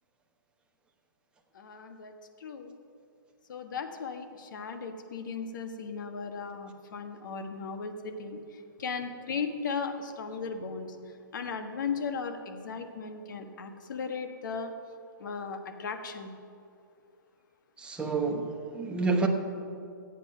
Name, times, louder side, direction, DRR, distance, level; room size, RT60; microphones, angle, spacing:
voice 1, 1.5-2.1 2.4-2.7 3.5-8.4 8.8-10.9 11.3-14.7 15.2-16.3, left 5 dB, 65° left, 6 dB, 1.4 m, -36 dB
voice 2, 17.8-19.3, right 4 dB, 10° right, 2 dB, 1.1 m, -29 dB
15.0 x 8.3 x 5.7 m, 2.5 s
hypercardioid pair, 145°, 11 cm